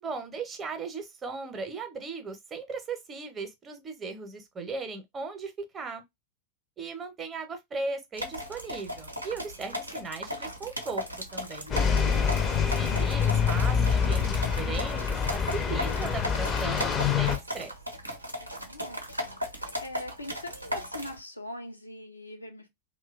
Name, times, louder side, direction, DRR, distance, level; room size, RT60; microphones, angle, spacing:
voice 1, 0.0-6.0 6.8-11.0 11.3-11.7 12.6-17.7, right 4 dB, 20° right, 0.7 m, -37 dB
sound 1, 8.2-21.2, equal, 85° right, 0.6 m, -37 dB
sound 2, 11.7-17.4, left 6 dB, 25° left, 0.5 m, -26 dB
voice 2, 18.4-22.7, left 1 dB, 85° left, 0.5 m, -42 dB
2.9 x 2.2 x 2.3 m
figure-of-eight pair, 90°, 0 cm